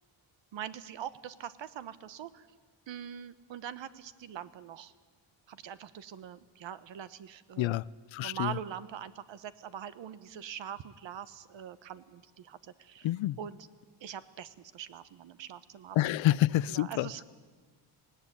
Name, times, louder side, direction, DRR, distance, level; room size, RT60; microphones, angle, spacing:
voice 1, 0.5-2.5 2.9-4.9 5.5-7.8 8.2-13.1 13.4-13.7 14.0-16.0 16.7-17.2, right 9 dB, 65° right, 15 dB, 1.0 m, -43 dB
voice 2, 8.1-8.5 13.0-13.4 16.0-17.1, left 14 dB, 70° left, 21 dB, 0.5 m, -27 dB
18.0 x 18.0 x 9.9 m, 1.5 s
wide cardioid pair, 145°, 48 cm